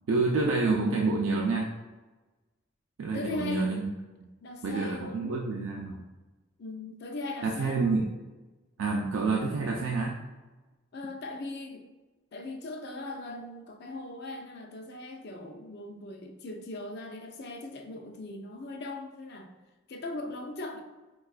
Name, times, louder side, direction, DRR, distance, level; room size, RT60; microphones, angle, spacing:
voice 1, 0.1-1.7 3.0-3.9 4.2-4.3 4.6-6.0 7.4-8.1 8.8-10.2, right 3 dB, 80° right, -1 dB, 0.4 m, -28 dB
voice 2, 3.1-3.7 4.4-5.4 6.6-8.1 10.9-11.9 12.3-19.5 19.9-20.8, left 2 dB, 55° left, 3 dB, 0.4 m, -39 dB
4.6 x 2.3 x 2.4 m, 1.2 s
head